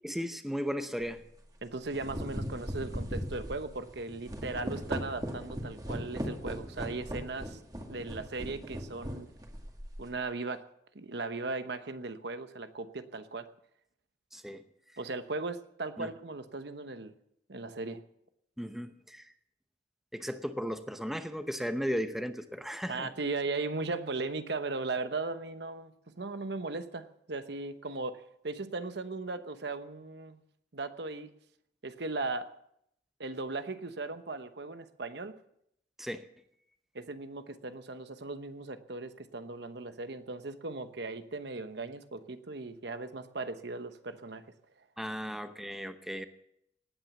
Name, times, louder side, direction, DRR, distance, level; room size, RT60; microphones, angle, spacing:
voice 1, 0.0-1.2 14.3-14.6 16.0-16.1 18.6-19.3 20.1-23.1 36.0-36.3 45.0-46.2, equal, ahead, 8 dB, 0.8 m, -36 dB
sound 1, 1.0-1.2 1.7-10.2, equal, 20° right, 2.2 m, -39 dB
voice 2, 1.6-7.6 7.9-9.3 10.0-10.6 10.9-13.5 15.0-17.1 17.5-18.0 22.9-30.4 30.7-31.3 31.8-32.5 33.2-35.3 36.9-44.4, right 3 dB, 65° right, 10 dB, 1.0 m, -37 dB
18.5 x 9.2 x 7.0 m, 0.74 s
head